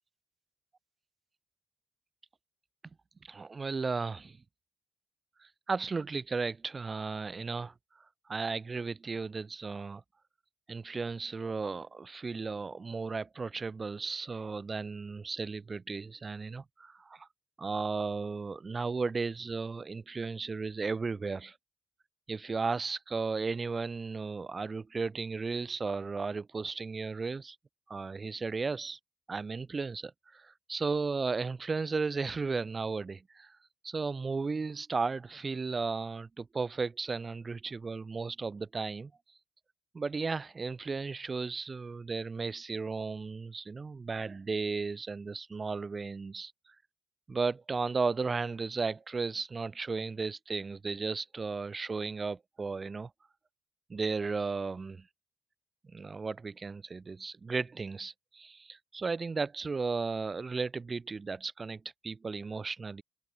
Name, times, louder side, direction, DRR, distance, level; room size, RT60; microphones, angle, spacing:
voice 1, 3.3-4.4 5.4-7.7 8.3-10.0 10.7-17.3 17.6-21.6 22.3-27.6 27.9-29.0 29.3-33.6 33.8-39.1 39.9-46.5 47.3-53.1 53.9-55.1 55.9-63.0, right 4 dB, 40° right, 1.2 m, -35 dB
open air
supercardioid pair, 55°, 0 cm